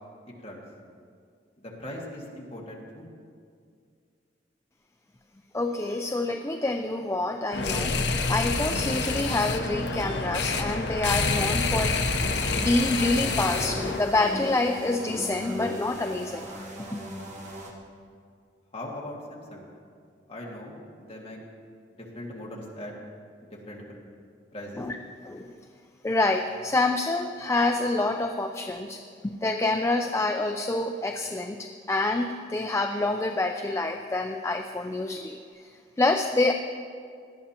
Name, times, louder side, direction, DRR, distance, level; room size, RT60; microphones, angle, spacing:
voice 1, 1.6-3.1 18.7-19.7 20.3-21.4 22.0-22.9 23.4-24.0 24.5-24.9, left 1 dB, 30° left, -3 dB, 1.9 m, -40 dB
voice 2, 5.5-12.0 12.6-16.5 16.9-17.0 24.8-25.0 25.2-25.6 26.0-35.7 36.0-36.5, left 2 dB, 15° left, 5 dB, 0.3 m, -27 dB
sound 1, 7.5-14.0, left 3 dB, 60° left, 0.8 m, -27 dB
sound 2, 12.2-17.7, equal, 40° right, 1.6 m, -41 dB
18.0 x 11.5 x 2.9 m, 2.2 s
head